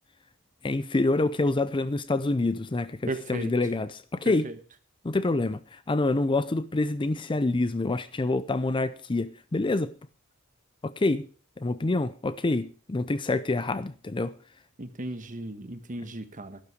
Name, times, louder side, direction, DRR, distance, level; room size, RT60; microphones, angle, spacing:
voice 1, 0.6-4.5 5.0-9.9 10.8-11.3 11.6-14.3, left 2 dB, 25° left, 0.5 m, -27 dB
voice 2, 3.1-3.5 4.4-4.5 14.8-16.6, right 2 dB, 40° right, 1.3 m, -35 dB
12.0 x 11.5 x 5.0 m
head